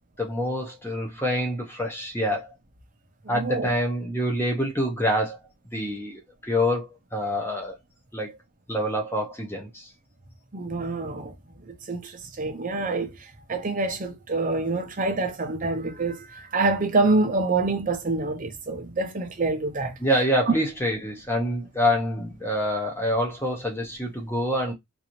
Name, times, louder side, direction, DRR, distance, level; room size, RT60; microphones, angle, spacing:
voice 1, 0.2-2.5 3.3-5.4 5.7-7.8 8.1-8.4 8.7-9.9 20.0-24.7, equal, 10° left, 0.8 m, -26 dB
voice 2, 3.3-3.7 10.5-11.3 11.9-12.1 12.4-13.1 13.5-20.0, right 3 dB, 40° right, 0.7 m, -26 dB
3.8 x 2.7 x 3.0 m
head